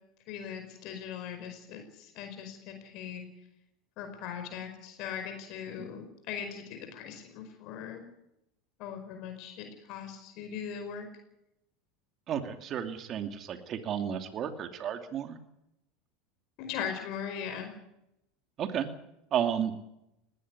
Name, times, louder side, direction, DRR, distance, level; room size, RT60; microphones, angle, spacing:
voice 1, 0.3-3.3 4.0-8.0 8.8-11.1 16.6-17.7, left 8 dB, 60° left, 6 dB, 5.0 m, -39 dB
voice 2, 12.3-15.4 18.6-18.9 19.3-19.8, right 9 dB, 40° right, 7 dB, 2.7 m, -32 dB
19.5 x 16.0 x 9.8 m, 0.85 s
hypercardioid pair, 100°, 0 cm